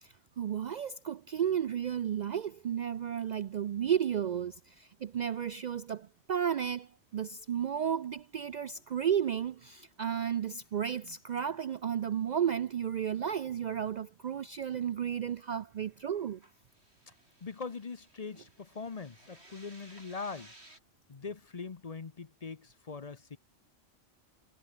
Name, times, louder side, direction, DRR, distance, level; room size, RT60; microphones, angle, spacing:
voice 1, 0.0-16.4, right 9 dB, 90° right, 0.3 m, -33 dB
sound 1, 1.5-2.0 2.3-2.4 2.8-2.9 3.3-4.4 4.7-6.7 7.2-11.1 11.4-11.8 12.1-12.2 12.5-12.6 13.1-15.0 15.3-20.8, right 1 dB, 55° right, 6.9 m, -62 dB
voice 2, 17.4-20.5 21.1-23.4, left 4 dB, 35° left, 0.8 m, -42 dB
omnidirectional pair, 1.3 m